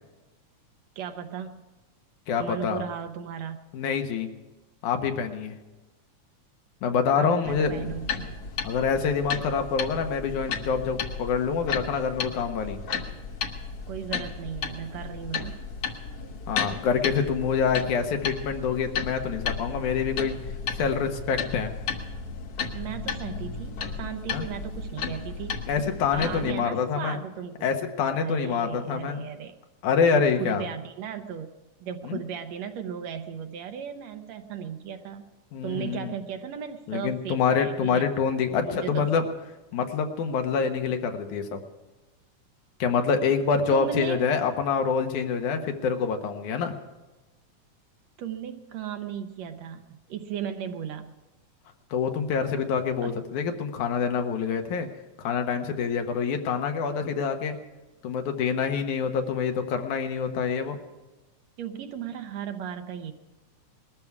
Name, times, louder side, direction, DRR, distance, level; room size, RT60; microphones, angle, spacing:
voice 1, 1.0-1.7 2.4-3.6 7.2-8.4 13.9-15.6 22.7-25.6 26.1-27.7 28.1-29.6 30.1-31.5 31.8-35.2 35.6-38.1 38.5-39.3 43.7-44.2 48.2-51.1 53.0-53.2 61.6-63.1, right 8 dB, 70° right, 7 dB, 1.8 m, -36 dB
voice 2, 2.3-2.8 3.7-4.3 4.8-5.5 6.8-8.2 8.6-12.8 16.5-20.4 20.7-21.7 24.3-24.5 25.7-27.2 27.6-29.3 29.8-30.6 32.0-32.2 35.5-36.1 36.9-39.2 39.7-41.6 42.8-46.8 51.9-54.9 55.2-57.6 58.0-60.8, left 6 dB, 75° left, 5 dB, 2.6 m, -26 dB
sound 1, 7.4-26.5, left 5 dB, 60° left, 1.9 m, -34 dB
20.5 x 13.0 x 4.8 m, 1.1 s
omnidirectional pair, 3.5 m